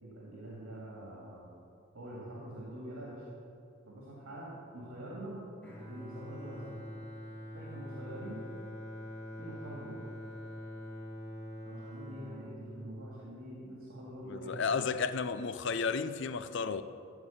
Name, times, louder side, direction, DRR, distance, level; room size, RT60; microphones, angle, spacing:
voice 1, 0.0-1.5 1.9-3.2 3.8-5.4 5.9-6.8 7.5-8.4 9.4-10.0 11.6-14.6 14.9-15.0, right 1 dB, 85° right, 2.3 m, -45 dB
Bowed string instrument, 5.6-13.8, left 1 dB, 10° left, 2.0 m, -45 dB
voice 2, 14.3-16.8, left 5 dB, 55° left, 0.5 m, -33 dB
14.0 x 4.8 x 7.1 m
head